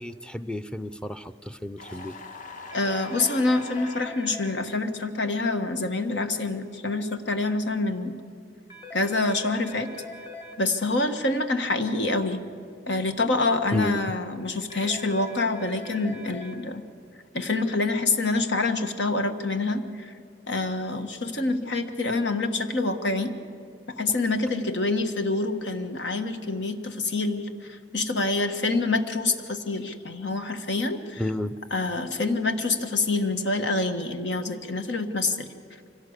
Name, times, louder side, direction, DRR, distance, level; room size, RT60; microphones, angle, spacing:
voice 1, 0.0-2.1 13.7-14.0 31.2-31.6, left 1 dB, 5° left, 11 dB, 0.5 m, -31 dB
sound 1, 1.8-4.1, left 4 dB, 50° left, 1.3 m, -42 dB
voice 2, 2.7-8.2 8.9-9.9 10.6-12.4 12.9-16.8 17.3-20.1 20.5-23.3 24.0-31.2 31.7-35.5, left 2 dB, 85° left, 8 dB, 1.5 m, -26 dB
sound 2, 2.7-4.5 8.7-10.5 14.7-16.5, left 2 dB, 30° left, 2.6 m, -41 dB
25.0 x 17.0 x 8.1 m, 2.5 s
head